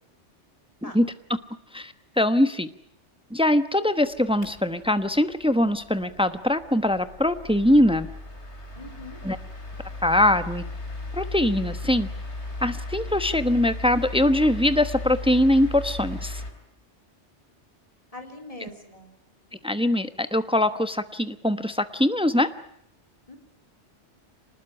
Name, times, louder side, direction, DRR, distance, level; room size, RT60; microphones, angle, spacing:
voice 1, 1.7-2.7 3.3-8.1 9.2-9.4 10.0-10.6 11.1-12.1 12.6-16.4 19.6-22.5, left 1 dB, 5° right, 11 dB, 0.9 m, -22 dB
sound 1, 4.0-16.5, left 2 dB, 65° left, 3.9 m, -37 dB
voice 2, 8.7-9.2 18.1-19.1 23.3-23.4, left 2 dB, 30° left, 4 dB, 4.1 m, -42 dB
25.5 x 20.0 x 10.0 m, 0.77 s
omnidirectional pair, 1.2 m